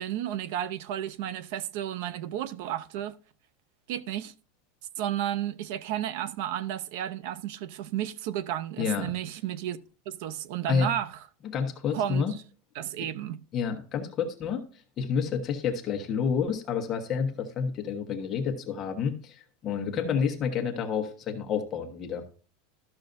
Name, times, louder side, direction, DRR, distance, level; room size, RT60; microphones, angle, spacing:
voice 1, 0.0-3.1 3.9-4.3 5.0-9.8 10.1-11.2 11.9-12.4 12.7-13.4, right 11 dB, 60° right, 0.5 m, -32 dB
voice 2, 8.8-9.1 10.7-10.9 11.5-12.3 13.5-14.6 15.0-22.2, left 6 dB, 25° left, 1.2 m, -29 dB
12.5 x 6.4 x 2.6 m
supercardioid pair, 155°, 0 cm